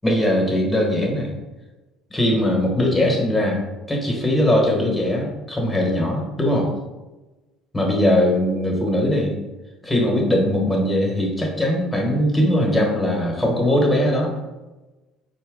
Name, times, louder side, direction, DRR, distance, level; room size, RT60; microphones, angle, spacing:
voice 1, 0.0-1.3 2.1-6.7 7.7-9.3 9.8-14.3, left 1 dB, 15° left, -1 dB, 1.2 m, -20 dB
4.4 x 2.1 x 3.6 m, 1.1 s
supercardioid pair, 80°, 0 cm